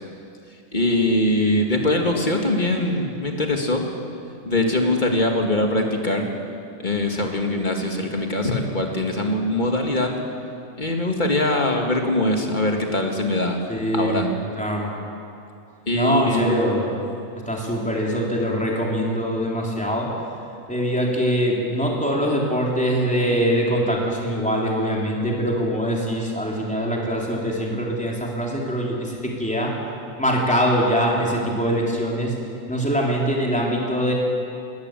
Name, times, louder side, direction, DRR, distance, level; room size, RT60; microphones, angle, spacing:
voice 1, 0.7-3.8 4.5-6.3 6.8-10.1 10.8-13.6 13.9-14.3 15.9-16.6, left 1 dB, 35° left, 2 dB, 2.2 m, -22 dB
voice 2, 13.7-14.3 14.6-14.9 15.9-16.9 17.5-20.1 20.7-29.7 30.2-32.3 32.7-34.1, equal, 5° left, -3 dB, 3.6 m, -23 dB
21.5 x 13.5 x 9.1 m, 2.5 s
omnidirectional pair, 1.4 m